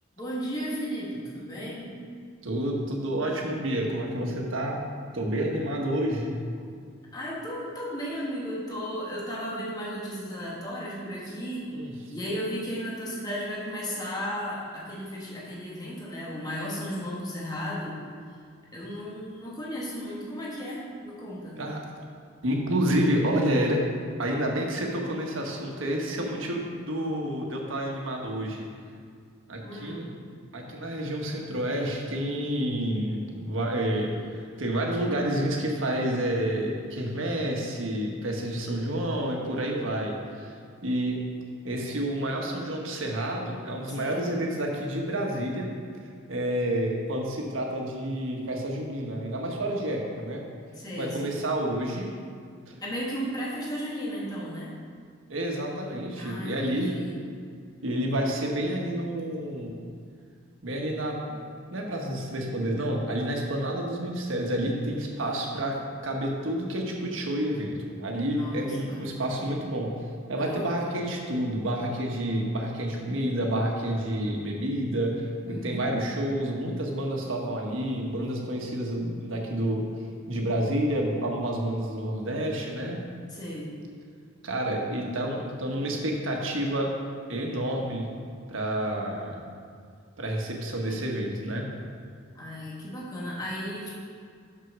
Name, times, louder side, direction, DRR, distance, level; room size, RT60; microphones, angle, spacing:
voice 1, 0.2-1.9 7.1-11.7 12.1-18.0 18.7-21.6 29.6-30.0 44.0-44.3 50.7-51.4 52.8-54.8 56.2-57.2 68.3-69.4 70.4-70.7 75.5-76.3 83.3-83.7 92.3-93.9, equal, 20° left, -6 dB, 1.6 m, -35 dB
voice 2, 2.4-4.8 5.1-6.3 11.7-11.9 21.6-21.8 22.4-23.8 24.2-28.6 29.5-30.0 30.5-40.5 40.8-41.2 41.6-45.7 46.3-50.4 51.0-52.1 52.7-52.8 55.3-56.9 57.8-59.7 60.6-61.2 61.7-65.8 66.0-69.9 70.3-79.8 80.3-83.0 84.4-86.9 87.3-88.0 88.5-89.4 90.2-91.7, right 1 dB, 80° right, 0 dB, 1.4 m, -29 dB
6.3 x 6.0 x 6.1 m, 2.2 s
head